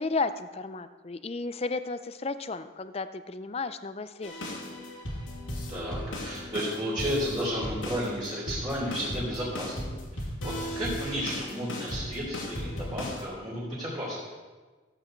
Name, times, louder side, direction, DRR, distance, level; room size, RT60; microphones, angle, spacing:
voice 1, 0.0-4.3, left 3 dB, 30° left, 12 dB, 0.5 m, -33 dB
sound 1, 4.2-13.2, left 1 dB, 90° left, 2.7 m, -36 dB
voice 2, 5.7-9.7 10.1-14.2, equal, 25° right, -9 dB, 3.3 m, -33 dB
14.5 x 8.3 x 4.5 m, 1.3 s
head